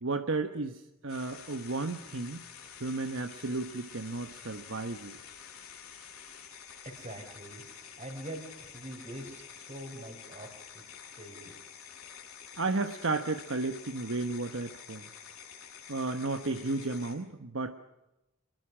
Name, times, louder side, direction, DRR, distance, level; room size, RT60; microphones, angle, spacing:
voice 1, 0.0-2.5 2.8-5.2 12.6-15.0 15.9-17.7, right 3 dB, 65° right, 7 dB, 1.1 m, -33 dB
sound 1, 1.1-17.1, left 7 dB, 90° left, 7.7 m, -49 dB
voice 2, 6.8-7.6 8.0-10.8 11.2-11.5, right 1 dB, 30° right, 6 dB, 4.6 m, -44 dB
25.5 x 22.0 x 6.1 m, 0.97 s
head